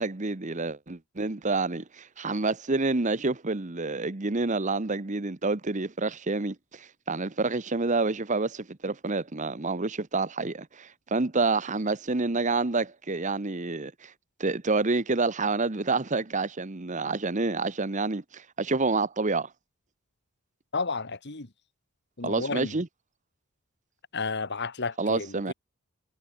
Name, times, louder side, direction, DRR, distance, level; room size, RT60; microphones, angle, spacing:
voice 1, 0.0-14.1 14.4-19.5 22.2-22.9 25.0-25.5, right 3 dB, 35° right, 1.0 m, -28 dB
voice 2, 20.7-21.5 22.2-22.7 24.1-25.5, left 4 dB, 55° left, 1.8 m, -32 dB
head